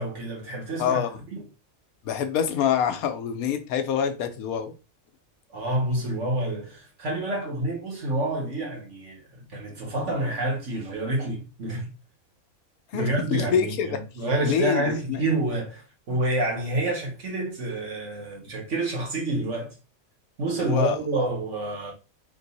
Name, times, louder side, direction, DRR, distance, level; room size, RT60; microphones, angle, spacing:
voice 1, 0.0-1.0 1.3-1.5 5.5-11.9 12.9-19.8 20.4-21.9, right 1 dB, 55° right, 1.6 m, -28 dB
voice 2, 0.8-1.2 2.1-4.8 12.9-13.9 14.4-15.2 20.6-21.0, left 8 dB, 85° left, 1.1 m, -26 dB
3.9 x 2.6 x 4.0 m
omnidirectional pair, 1.5 m